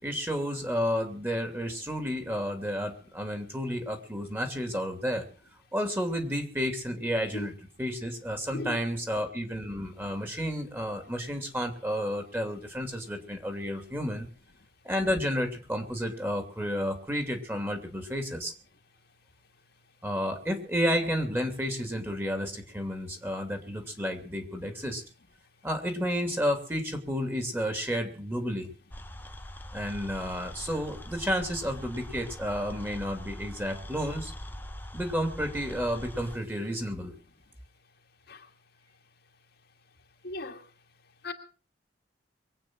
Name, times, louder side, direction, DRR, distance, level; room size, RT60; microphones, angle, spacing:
voice 1, 0.0-5.2 5.7-7.5 7.8-14.3 14.8-18.5 20.0-25.0 25.6-28.7 29.7-34.3 34.9-37.1, equal, 15° right, 2.8 m, -31 dB
sound 1, 28.9-36.4, equal, 10° left, 1.0 m, -42 dB
voice 2, 40.2-40.6 41.2-41.3, left 2 dB, 65° left, 2.1 m, -37 dB
23.0 x 8.7 x 6.3 m
head